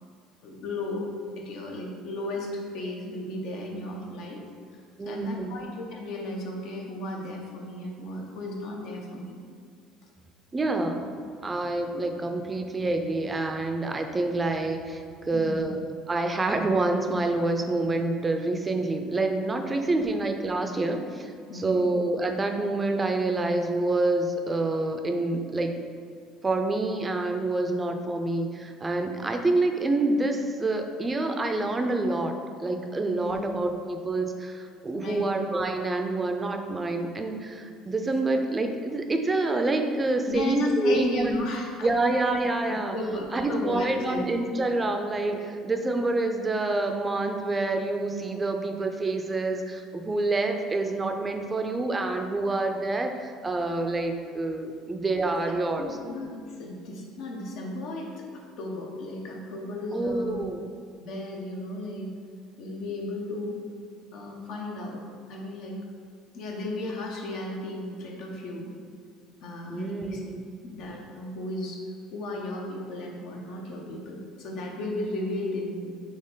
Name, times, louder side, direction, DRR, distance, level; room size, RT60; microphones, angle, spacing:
voice 1, 0.4-1.1 1.4-4.4 4.7-9.4 15.3-15.6 19.9-20.0 21.5-21.9 33.2-33.4 34.9-35.2 40.3-41.9 42.9-44.3 45.3-45.4 55.4-58.3 58.6-60.4 61.0-62.1 62.6-63.6 64.1-65.0 65.3-65.7 66.3-68.7 69.4-70.2 70.6-71.8 72.1-76.0, left 2 dB, 65° left, 0 dB, 0.8 m, -35 dB
voice 2, 5.0-5.6 10.5-11.0 11.4-15.8 16.1-25.7 26.4-41.5 41.8-42.9 43.3-56.0 59.9-60.6 69.7-70.4, right 2 dB, 25° right, 5 dB, 0.5 m, -27 dB
4.2 x 2.9 x 3.9 m, 2.2 s
hypercardioid pair, 75°, 0 cm